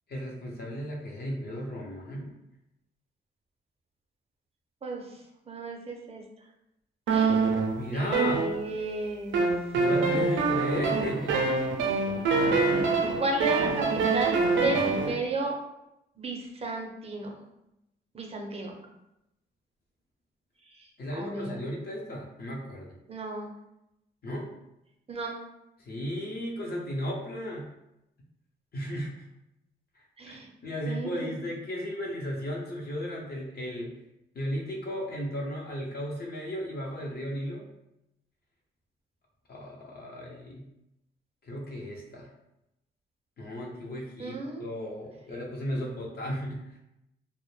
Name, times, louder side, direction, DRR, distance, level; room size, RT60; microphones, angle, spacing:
voice 1, 0.1-2.3 7.8-8.4 9.7-11.4 11.8-11.9 21.0-23.0 24.2-24.5 25.8-27.7 28.7-29.2 30.3-33.9 34.3-37.7 39.5-40.6 41.4-42.3 43.4-46.6, equal, 55° left, -2 dB, 0.7 m, -35 dB
voice 2, 4.8-6.2 7.1-7.5 7.9-9.4 13.2-15.5 16.2-17.4 18.1-18.8 20.7-21.6 23.1-23.5 25.1-25.4 30.2-30.5 30.9-31.4 44.2-44.7, right 2 dB, 30° right, 1 dB, 0.6 m, -34 dB
sound 1, 7.1-8.9 9.3-15.1, right 4 dB, 90° right, 0.4 m, -25 dB
2.1 x 2.1 x 3.1 m, 0.87 s
cardioid pair, 70°, 19 cm